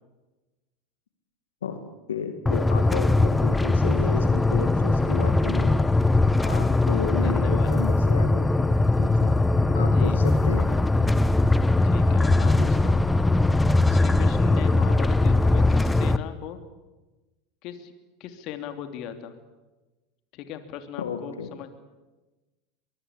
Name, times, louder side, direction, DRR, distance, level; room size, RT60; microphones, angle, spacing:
voice 1, 1.6-5.8 6.5-9.4 9.7-10.7 21.0-21.5, left 6 dB, 85° left, 7 dB, 2.3 m, -33 dB
sound 1, 2.5-16.2, left 2 dB, 10° left, 1.2 m, -21 dB
voice 2, 6.3-6.8 7.2-7.7 9.8-10.2 11.8-13.1 13.9-16.6 17.6-17.9 18.2-19.3 20.3-21.7, left 10 dB, 50° left, 8 dB, 3.1 m, -38 dB
23.5 x 23.0 x 8.7 m, 1.1 s
hypercardioid pair, 85°, 0 cm